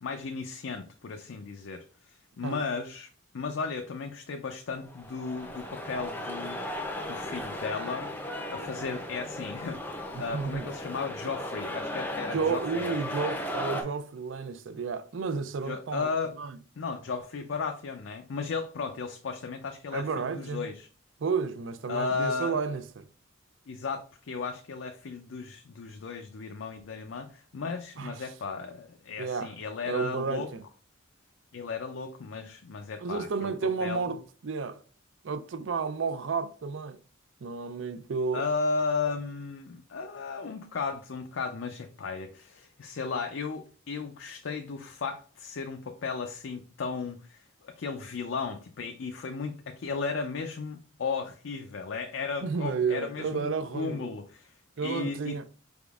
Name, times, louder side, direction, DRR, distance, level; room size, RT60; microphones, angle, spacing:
voice 1, 0.0-3.1 3.3-6.6 7.1-8.1 8.5-13.0 15.7-16.3 16.8-20.9 21.9-22.6 23.7-30.5 31.5-33.5 33.8-34.2 38.3-54.5 54.8-55.4, left 4 dB, 75° left, 0.4 m, -35 dB
sound 1, 4.8-13.8, left 1 dB, 10° left, 0.5 m, -36 dB
voice 2, 10.1-10.7 12.3-16.1 16.4-16.6 19.9-20.7 21.2-23.1 28.0-28.3 29.2-29.5 29.9-30.6 33.0-34.8 35.2-37.0 37.4-38.4 52.4-54.1 54.8-55.4, right 5 dB, 70° right, 0.5 m, -32 dB
5.0 x 3.5 x 2.4 m
head